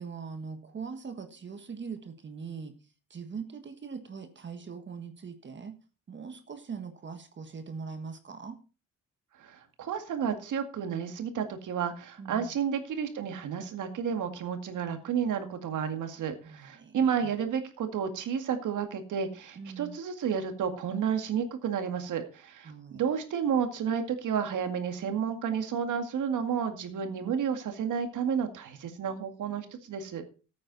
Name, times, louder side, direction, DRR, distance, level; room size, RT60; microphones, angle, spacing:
voice 1, 0.0-2.7 3.1-5.7 6.1-8.6 12.2-12.5 16.4-17.0 17.2-17.3 19.5-20.0 22.6-23.0 27.0-27.3, right 5 dB, 35° right, 8 dB, 1.5 m, -41 dB
voice 2, 9.4-30.2, right 7 dB, 70° right, 7 dB, 2.1 m, -31 dB
14.0 x 8.8 x 4.0 m, 0.34 s
cardioid pair, 105°, 32 cm